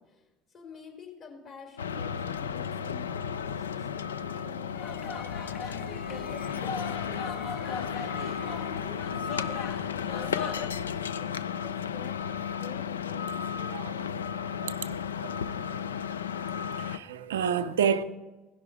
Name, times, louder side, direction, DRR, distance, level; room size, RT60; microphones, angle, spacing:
voice 1, 0.0-5.4 6.1-8.1 8.4-14.2, left 4 dB, 45° left, 3.4 m, -48 dB
sound 1, 1.8-17.0, left 7 dB, 90° left, 0.3 m, -34 dB
sound 2, 4.7-10.7, left 5 dB, 60° left, 1.1 m, -38 dB
voice 2, 14.5-16.0 16.8-18.0, right 7 dB, 85° right, 0.4 m, -31 dB
16.0 x 5.7 x 4.9 m
hypercardioid pair, 70°, 0 cm